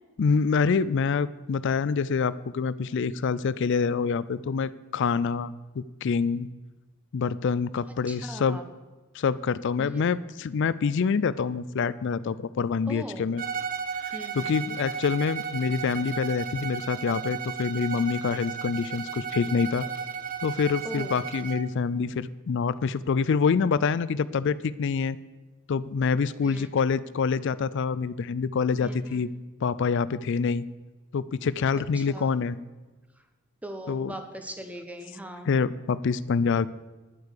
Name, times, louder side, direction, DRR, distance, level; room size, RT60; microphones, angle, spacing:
voice 1, 0.2-6.5 7.1-8.6 9.1-13.4 14.0-19.9 20.4-25.2 25.7-29.3 29.6-30.6 31.1-32.6 33.9-34.1 35.5-36.7, left 5 dB, 60° left, 17 dB, 0.4 m, -26 dB
voice 2, 8.1-8.6 9.8-10.1 12.9-13.2 14.1-14.7 20.8-21.2 26.4-26.7 28.8-29.2 31.9-32.3 33.6-35.5, right 1 dB, 5° right, 6 dB, 1.1 m, -40 dB
Bowed string instrument, 13.4-21.7, right 7 dB, 45° right, 0.8 m, -34 dB
10.5 x 8.1 x 6.6 m, 1.2 s
head